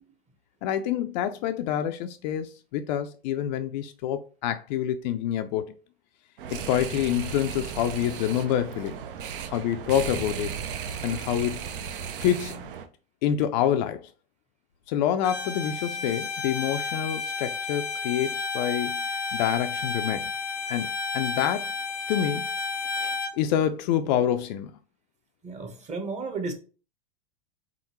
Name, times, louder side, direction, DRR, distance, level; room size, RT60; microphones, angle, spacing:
voice 1, 0.6-5.8 6.5-9.0 9.5-10.5 11.0-11.7 12.2-12.7 13.2-14.1 14.9-20.3 20.7-21.7 22.1-22.5 23.4-24.7, left 10 dB, 50° left, 0.4 m, -27 dB
sound 1, 6.4-12.9, right 7 dB, 60° right, 0.7 m, -35 dB
Bowed string instrument, 15.2-23.3, left 4 dB, 85° left, 0.8 m, -31 dB
voice 2, 25.4-26.5, right 4 dB, 25° right, 1.0 m, -33 dB
3.8 x 3.6 x 2.9 m
hypercardioid pair, 100°, 30 cm